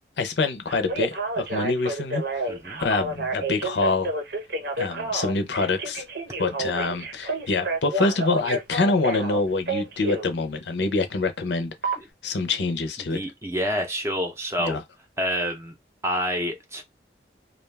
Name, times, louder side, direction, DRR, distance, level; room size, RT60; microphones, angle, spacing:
voice 1, 0.2-2.5 2.8-4.1 4.8-6.0 6.4-12.0 12.2-13.2 14.6-14.8, left 3 dB, 75° left, 0.6 m, -26 dB
Telephone, 0.7-10.3 11.8-12.0, right 2 dB, 65° right, 0.8 m, -29 dB
voice 2, 2.5-2.8 12.0-12.1 13.0-14.8 15.2-15.7 16.0-16.8, equal, 15° right, 0.6 m, -28 dB
2.3 x 2.3 x 3.3 m
head